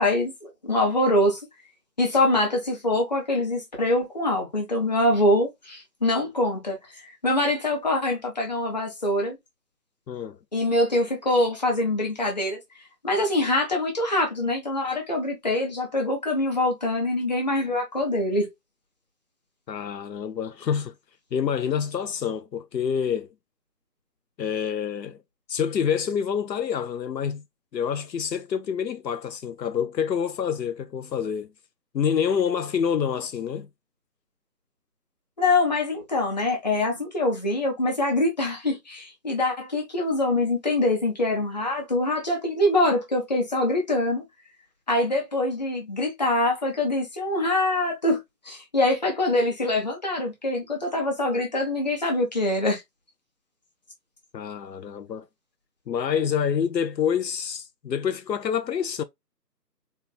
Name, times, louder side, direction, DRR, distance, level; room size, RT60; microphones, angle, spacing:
voice 1, 0.0-1.4 2.0-6.8 7.0-9.4 10.5-12.6 13.0-18.5 35.4-44.2 44.9-48.2 48.4-52.8, left 1 dB, 25° left, 1.0 m, -24 dB
voice 2, 10.1-10.4 19.7-20.9 21.3-23.3 24.4-25.2 25.5-27.4 27.7-31.5 31.9-33.7 54.3-55.3 55.9-59.0, left 7 dB, 80° left, 0.6 m, -27 dB
4.1 x 2.3 x 3.2 m
figure-of-eight pair, 160°, 50 cm